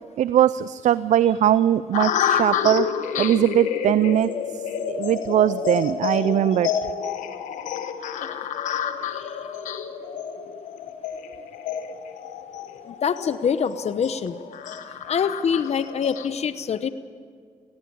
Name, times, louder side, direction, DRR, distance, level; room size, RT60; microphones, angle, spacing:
voice 1, 0.2-2.9 3.2-4.3 4.9-6.7, right 11 dB, 70° right, 16 dB, 0.5 m, -20 dB
sound 1, 1.9-16.3, left 8 dB, 90° left, 1.1 m, -29 dB
voice 2, 9.0-9.4 12.8-14.4 15.1-16.9, left 7 dB, 60° left, 13 dB, 0.9 m, -25 dB
18.0 x 17.0 x 8.7 m, 2.1 s
supercardioid pair, 55°, 13 cm